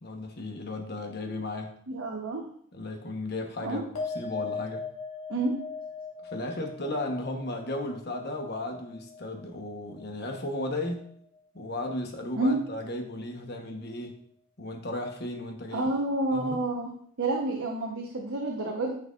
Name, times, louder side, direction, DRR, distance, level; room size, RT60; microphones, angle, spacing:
voice 1, 0.0-1.7 2.7-3.9 4.1-4.8 6.2-11.1 11.5-14.2 14.6-15.9 16.3-16.6, left 1 dB, 50° left, 3 dB, 1.1 m, -35 dB
voice 2, 1.9-2.4 3.6-3.8 5.3-5.5 12.3-12.6 15.7-16.9 17.2-18.9, right 2 dB, 70° right, -1 dB, 1.1 m, -29 dB
sound 1, 4.0-10.6 10.9-11.6, left 5 dB, 90° left, 2.0 m, -40 dB
10.0 x 6.1 x 2.5 m, 0.62 s
head